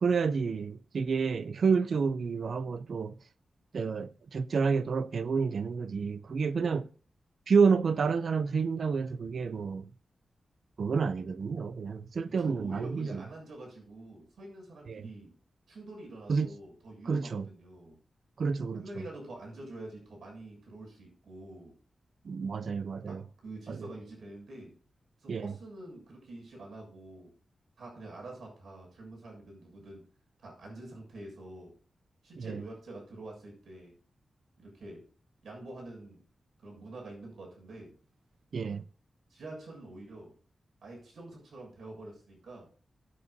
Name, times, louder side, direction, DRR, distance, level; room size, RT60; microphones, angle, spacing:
voice 1, 0.0-3.1 3.7-6.9 7.5-9.9 10.8-13.2 14.9-15.1 16.3-16.5 17.1-17.4 18.4-19.0 22.2-23.2 23.7-23.9 25.3-25.5 32.4-32.6 38.5-38.8, right 5 dB, 55° right, 0.4 m, -29 dB
voice 2, 12.4-15.3 15.7-18.0 18.7-21.7 23.1-24.7 25.2-27.3 27.8-30.1 30.4-31.7 32.2-33.9 34.6-35.0 35.4-36.2 36.6-37.9 39.3-40.3 40.8-42.7, right 2 dB, 75° right, 7.1 m, -46 dB
17.0 x 9.6 x 2.7 m
wide cardioid pair, 165°, 0 cm